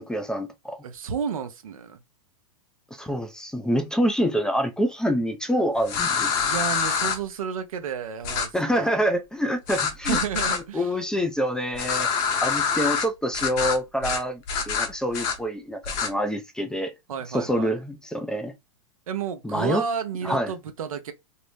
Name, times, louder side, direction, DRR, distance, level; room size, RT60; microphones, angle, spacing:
voice 1, 0.0-0.8 2.9-6.4 8.5-10.2 10.5-12.1 12.4-16.9 17.3-18.5 19.4-19.8 20.2-20.5, equal, 5° left, 0.4 m, -26 dB
voice 2, 0.8-2.0 6.4-9.0 10.1-10.9 17.1-17.7 19.1-21.1, right 7 dB, 85° right, 0.7 m, -31 dB
sound 1, 5.9-7.2 8.2-8.5 9.7-10.6 11.8-13.1 13.3-13.8 14.0-14.2 14.5-15.4 15.8-16.1, left 6 dB, 45° left, 0.9 m, -25 dB
2.6 x 2.1 x 3.1 m
hypercardioid pair, 125°, 17 cm